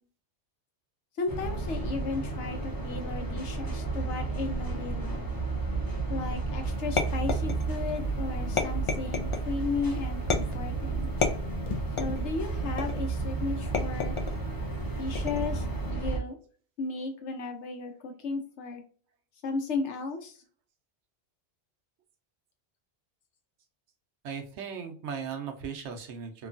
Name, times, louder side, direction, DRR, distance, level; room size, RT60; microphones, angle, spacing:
voice 1, 1.2-5.3 6.1-11.1 12.0-14.2 15.0-16.4 16.8-18.8 19.4-20.4, left 4 dB, 90° left, 5 dB, 1.1 m, -35 dB
sound 1, 1.3-16.2, right 3 dB, 20° left, 0.7 m, -32 dB
sound 2, 7.0-7.9 8.6-9.5 10.3-10.7 11.2-12.3 12.8-13.2 13.7-14.4 15.1-15.6, left 4 dB, 50° left, 0.4 m, -30 dB
voice 2, 24.2-26.5, right 6 dB, 80° right, 5 dB, 1.0 m, -37 dB
2.9 x 2.3 x 2.4 m, 0.43 s
omnidirectional pair, 1.1 m